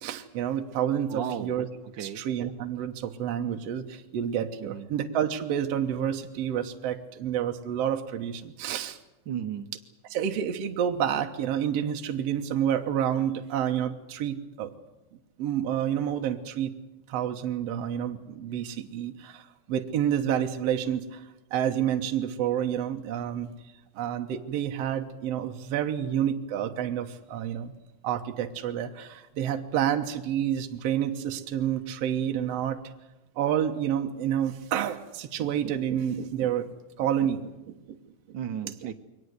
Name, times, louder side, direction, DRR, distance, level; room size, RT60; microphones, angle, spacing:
voice 1, 0.0-1.7 2.0-9.0 10.1-14.7 15.4-16.7 17.1-23.5 24.0-27.7 28.0-32.8 33.4-36.7 37.0-38.0 38.6-38.7, right 9 dB, 65° right, 5 dB, 2.1 m, -29 dB
voice 2, 1.1-1.5 2.0-2.2 4.6-4.9 9.3-9.7 38.3-38.9, right 9 dB, 85° right, 7 dB, 1.0 m, -34 dB
23.0 x 19.0 x 8.1 m, 1.0 s
omnidirectional pair, 3.4 m